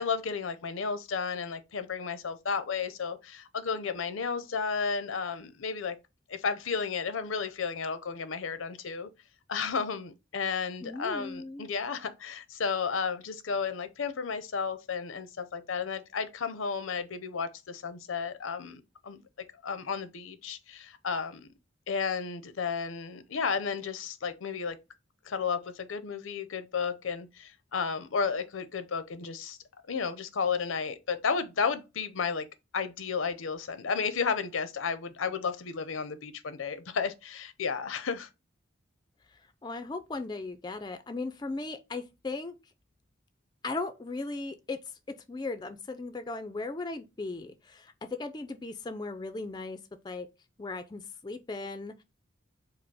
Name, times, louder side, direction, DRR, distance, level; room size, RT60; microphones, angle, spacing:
voice 1, 0.0-6.0 6.3-9.1 9.5-21.5 21.9-24.8 25.2-29.6 29.9-32.5 32.7-38.3, left 5 dB, 85° left, 0.6 m, -33 dB
voice 2, 10.8-11.7 39.3-42.6 43.6-44.8 45.1-49.8 50.0-50.3 50.6-52.0, left 3 dB, 20° left, 0.3 m, -37 dB
4.8 x 2.0 x 4.6 m
head